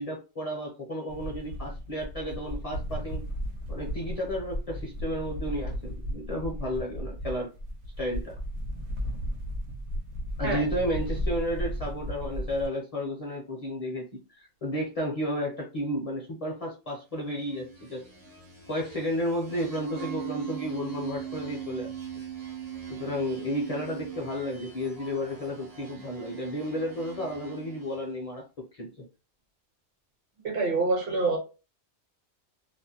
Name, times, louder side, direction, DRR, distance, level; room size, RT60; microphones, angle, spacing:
voice 1, 0.0-3.2 3.7-7.5 8.0-8.4 10.4-14.1 14.4-18.0 18.7-21.9 22.9-28.4 28.7-28.9, equal, 40° left, -1 dB, 0.6 m, -32 dB
sound 1, 1.1-12.7, equal, 90° right, 1.0 m, -35 dB
sound 2, 17.3-28.2, right 9 dB, 40° right, 0.6 m, -41 dB
voice 2, 30.4-31.4, right 3 dB, 60° right, 1 dB, 1.0 m, -26 dB
2.4 x 2.1 x 2.7 m, 0.31 s
omnidirectional pair, 1.1 m